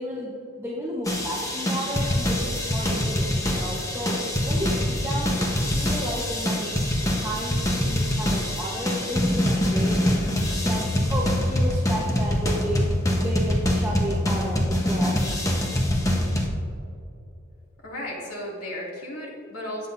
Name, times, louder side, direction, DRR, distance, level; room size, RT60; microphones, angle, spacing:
voice 1, 0.0-5.3 5.7-6.9 7.1-10.0 10.6-10.8 11.1-12.9 13.1-15.2, equal, 10° right, -5 dB, 1.1 m, -32 dB
sound 1, 1.1-16.5, left 1 dB, 15° left, 1.1 m, -24 dB
voice 2, 17.8-19.9, left 1 dB, 85° left, -4 dB, 2.6 m, -34 dB
19.0 x 7.7 x 2.7 m, 2.6 s
head